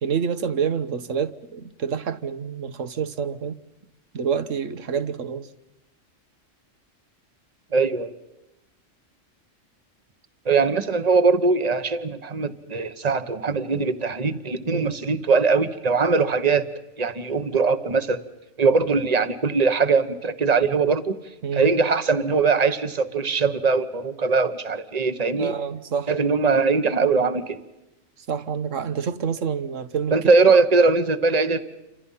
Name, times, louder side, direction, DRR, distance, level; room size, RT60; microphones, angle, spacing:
voice 1, 0.0-3.6 4.1-5.5 14.7-15.0 21.4-21.7 25.3-26.1 28.3-30.2, right 7 dB, 75° right, 1.5 m, -27 dB
voice 2, 7.7-8.2 10.4-16.7 17.0-18.2 18.6-21.1 21.5-25.5 26.1-27.6 30.1-31.6, right 4 dB, 30° right, 1.3 m, -21 dB
29.0 x 26.0 x 5.7 m
omnidirectional pair, 1.3 m